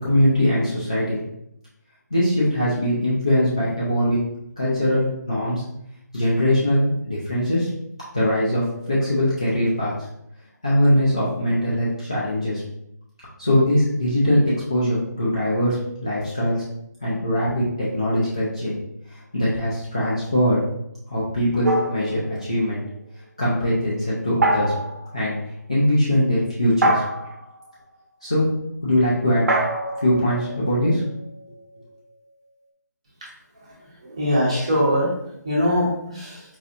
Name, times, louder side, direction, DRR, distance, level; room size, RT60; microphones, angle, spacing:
voice 1, 0.0-1.2 2.1-4.2 4.6-5.6 6.1-7.7 8.1-9.9 10.6-12.6 13.4-14.4 14.7-16.6 17.0-18.8 19.1-20.6 21.1-22.8 23.4-24.7 25.1-25.3 25.7-27.0 28.2-28.5 28.8-29.4 30.0-31.0, equal, 20° left, -8 dB, 0.4 m, -21 dB
sound 1, 21.6-22.7 24.4-25.0 26.8-27.5 29.5-31.2, right 1 dB, 55° right, 0.7 m, -24 dB
voice 2, 34.0-35.1 35.4-36.4, equal, 20° right, -5 dB, 0.7 m, -21 dB
4.2 x 2.7 x 2.5 m, 0.78 s
figure-of-eight pair, 180°, 10 cm